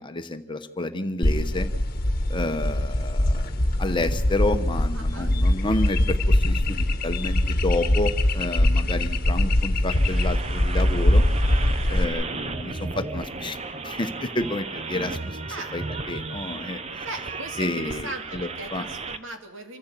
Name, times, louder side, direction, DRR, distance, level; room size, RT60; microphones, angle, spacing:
voice 1, 0.0-1.7 2.3-3.5 3.8-11.2 11.9-13.6 13.8-15.4 15.7-17.0 17.6-18.9, left 2 dB, 25° left, 8 dB, 1.0 m, -30 dB
sound 1, 1.2-12.0, left 1 dB, 45° left, 1.3 m, -22 dB
voice 2, 4.9-5.4 8.8-9.2 15.5-15.7 17.0-19.8, right 2 dB, 80° right, 5 dB, 2.4 m, -38 dB
sound 2, 9.9-19.2, right 3 dB, 30° right, 0.8 m, -34 dB
27.0 x 15.0 x 8.3 m, 1.0 s
head